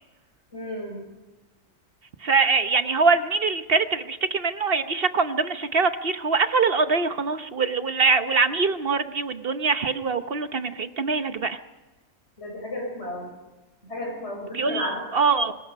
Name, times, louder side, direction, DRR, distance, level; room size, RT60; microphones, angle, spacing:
voice 1, 0.5-1.0 12.4-13.3 13.8-15.0, left 1 dB, 55° left, 0 dB, 5.7 m, -33 dB
voice 2, 2.2-11.6 14.5-15.5, right 4 dB, 50° right, 9 dB, 1.1 m, -23 dB
25.0 x 20.0 x 5.3 m, 1.1 s
omnidirectional pair, 1.3 m